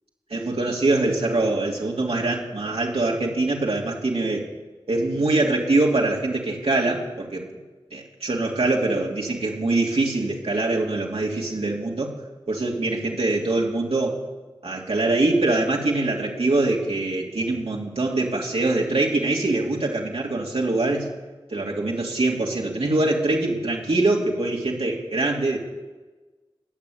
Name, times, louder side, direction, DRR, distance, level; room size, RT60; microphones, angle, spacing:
voice 1, 0.3-4.4 4.9-7.5 7.9-12.1 12.5-14.2 14.6-21.1 21.5-25.6, right 2 dB, 80° right, -2 dB, 3.1 m, -23 dB
21.0 x 7.1 x 9.5 m, 1.2 s
wide cardioid pair, 50°, 10 cm